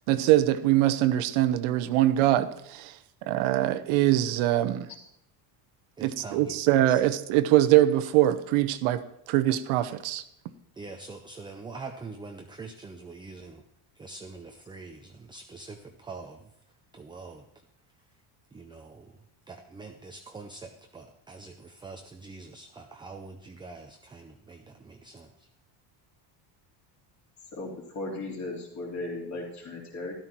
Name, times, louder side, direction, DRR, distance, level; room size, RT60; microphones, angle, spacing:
voice 1, 0.1-3.0 3.3-4.9 6.0-9.0 9.3-10.2, right 14 dB, 80° right, 1.0 m, -23 dB
voice 2, 6.0-6.6 6.9-7.0 10.7-13.6 14.0-16.5 16.9-17.5 18.5-25.5, right 3 dB, 10° right, 0.5 m, -44 dB
voice 3, 27.5-30.1, left 2 dB, 35° left, 3.3 m, -36 dB
13.0 x 12.5 x 4.5 m
cardioid pair, 175°, 47 cm